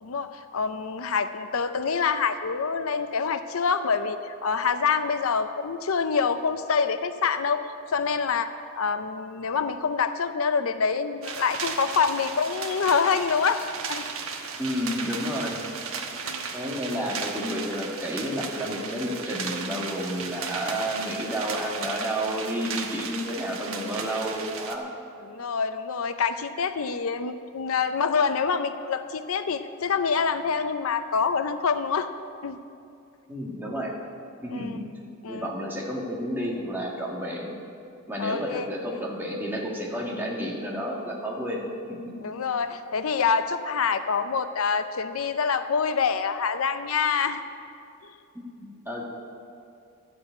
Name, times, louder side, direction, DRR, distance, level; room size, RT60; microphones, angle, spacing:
voice 1, 0.0-7.6 7.9-14.0 16.1-16.5 25.2-32.1 32.4-32.6 34.5-34.8 35.2-35.5 38.2-39.0 42.2-47.4, left 5 dB, 85° left, 10 dB, 0.6 m, -26 dB
sound 1, 11.2-24.8, right 5 dB, 80° right, 1.2 m, -35 dB
voice 2, 14.6-15.6 16.5-24.9 33.3-33.9 34.4-34.8 35.3-37.5 38.1-41.6 41.9-42.2 48.3-49.1, equal, 10° right, -3 dB, 1.9 m, -31 dB
13.0 x 6.9 x 8.8 m, 2.5 s
head